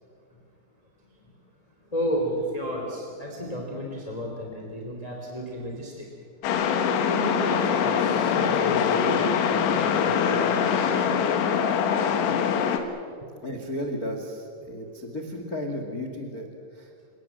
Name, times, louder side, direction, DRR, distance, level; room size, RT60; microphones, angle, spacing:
voice 1, 1.9-6.1 7.0-11.2 13.2-13.3 14.6-15.0, equal, 10° left, -1 dB, 2.3 m, -33 dB
sound 1, 6.4-12.8, left 7 dB, 85° left, 3.8 m, -23 dB
voice 2, 13.4-16.5 16.7-16.9, left 1 dB, 65° left, 3 dB, 0.9 m, -33 dB
29.5 x 18.0 x 7.6 m, 2.3 s
omnidirectional pair, 5.2 m